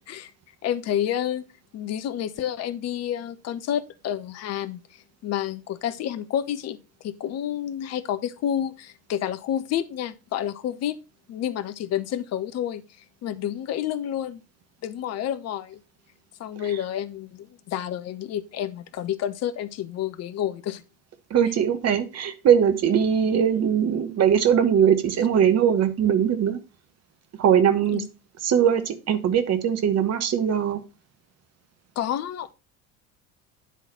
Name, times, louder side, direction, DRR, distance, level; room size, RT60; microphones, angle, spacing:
voice 1, 0.6-1.4 1.7-6.8 7.0-11.0 11.3-12.8 13.2-14.4 14.8-15.8 16.4-20.8 27.9-28.1 32.0-32.5, left 10 dB, 40° left, 0.7 m, -29 dB
voice 2, 21.3-26.6 27.4-28.0 28.4-30.8, right 8 dB, 35° right, 1.1 m, -21 dB
10.0 x 4.0 x 4.3 m
figure-of-eight pair, 65°, 42 cm